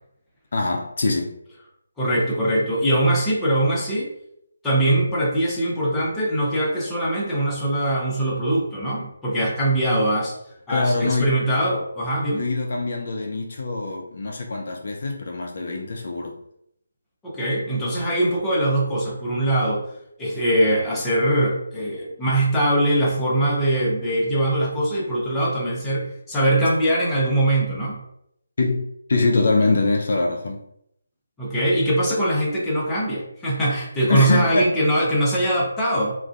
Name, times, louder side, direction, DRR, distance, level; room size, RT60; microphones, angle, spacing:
voice 1, 0.5-1.3 10.7-11.4 12.3-16.4 28.6-30.6 34.1-34.6, left 3 dB, 55° left, 1 dB, 0.3 m, -23 dB
voice 2, 2.0-4.1 4.6-10.3 10.7-12.4 17.2-19.8 20.2-28.0 31.4-36.2, right 1 dB, 10° left, -6 dB, 0.6 m, -22 dB
2.4 x 2.2 x 2.4 m, 0.75 s
figure-of-eight pair, 150°, 0 cm